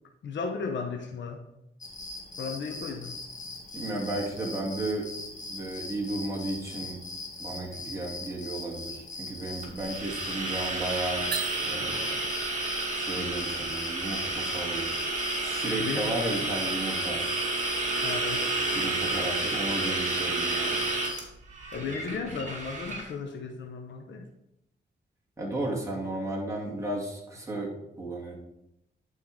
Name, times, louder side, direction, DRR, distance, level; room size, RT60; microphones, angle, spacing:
voice 1, 0.2-1.4 2.4-3.2 15.7-16.1 18.0-18.5 21.7-24.3, left 5 dB, 80° left, 3 dB, 0.9 m, -35 dB
sound 1, 1.8-21.2, left 3 dB, 40° left, 1.6 m, -41 dB
voice 2, 3.7-5.1 5.4-7.0 7.4-11.3 11.6-12.2 12.9-14.9 15.4-17.2 18.7-20.8 22.3-22.4 25.4-28.4, right 2 dB, 15° right, -3 dB, 2.8 m, -34 dB
sound 2, 9.6-23.1, right 2 dB, 40° right, 2.3 m, -31 dB
sound 3, 11.3-12.5, right 7 dB, 60° right, 0.8 m, -36 dB
11.0 x 4.8 x 3.7 m, 0.84 s
cardioid pair, 80°, 18 cm